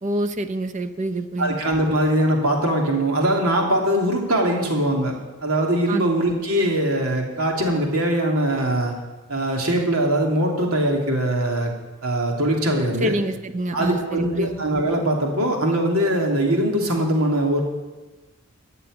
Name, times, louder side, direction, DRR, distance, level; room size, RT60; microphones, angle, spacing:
voice 1, 0.0-1.6 5.9-6.0 13.0-14.5, right 1 dB, 35° right, 10 dB, 0.6 m, -26 dB
voice 2, 1.4-5.2 5.4-8.9 9.3-11.7 12.0-13.2 13.7-17.6, right 1 dB, 85° right, 0 dB, 2.9 m, -21 dB
14.0 x 6.8 x 9.8 m, 1.2 s
head